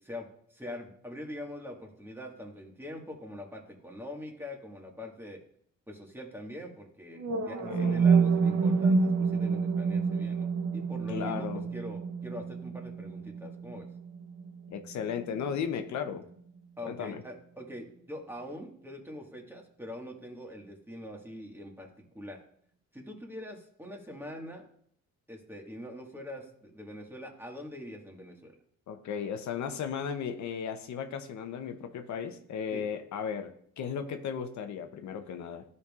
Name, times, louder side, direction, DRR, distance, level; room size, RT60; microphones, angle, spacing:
voice 1, 0.0-5.4 5.9-13.9 16.8-21.9 22.1-22.4 22.9-24.7 25.3-28.5 32.7-32.8, left 1 dB, 5° right, 1 dB, 1.6 m, -43 dB
sound 1, 7.2-15.2, right 5 dB, 65° right, 0.9 m, -28 dB
voice 2, 7.3-8.0 11.1-11.7 14.7-16.2 16.8-17.2 28.9-35.6, left 7 dB, 70° left, 7 dB, 0.8 m, -36 dB
12.5 x 5.4 x 2.4 m, 0.65 s
cardioid pair, 90°, 30 cm